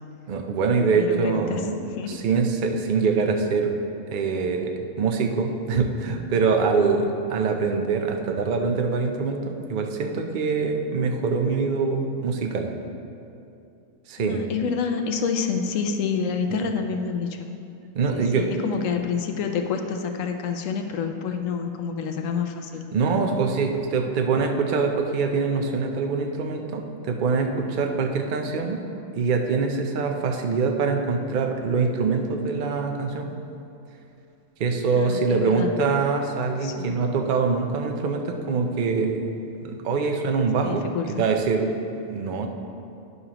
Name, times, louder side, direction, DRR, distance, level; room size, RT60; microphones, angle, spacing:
voice 1, 0.3-1.8 2.1-3.7 4.1-4.7 5.0-12.7 14.1-14.4 16.5-16.6 17.9-18.5 22.9-28.8 29.1-33.3 34.6-39.2 39.6-40.9 41.2-41.7 42.1-42.5, right 4 dB, 50° right, 4 dB, 0.6 m, -24 dB
voice 2, 0.9-2.2 14.2-17.5 18.1-22.8 34.9-35.7 36.6-37.0 40.6-41.2, left 6 dB, 70° left, 5 dB, 1.0 m, -28 dB
10.5 x 6.8 x 2.9 m, 2.6 s
omnidirectional pair, 1.4 m